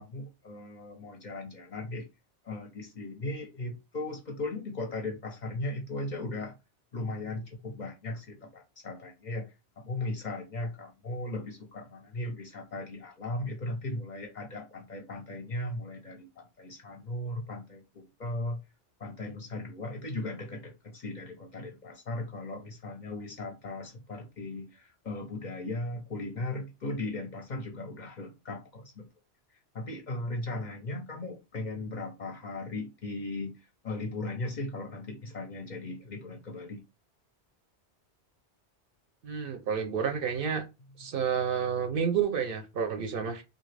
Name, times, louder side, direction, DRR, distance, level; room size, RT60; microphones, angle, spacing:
voice 1, 0.0-2.1 2.4-6.6 6.9-9.5 9.8-18.6 19.0-29.1 29.7-33.6 33.8-36.8, left 2 dB, 50° left, 3 dB, 0.7 m, -37 dB
voice 2, 39.2-40.6 41.0-43.4, right 7 dB, 60° right, 6 dB, 0.7 m, -30 dB
2.8 x 2.5 x 3.2 m, 0.25 s
omnidirectional pair, 1.1 m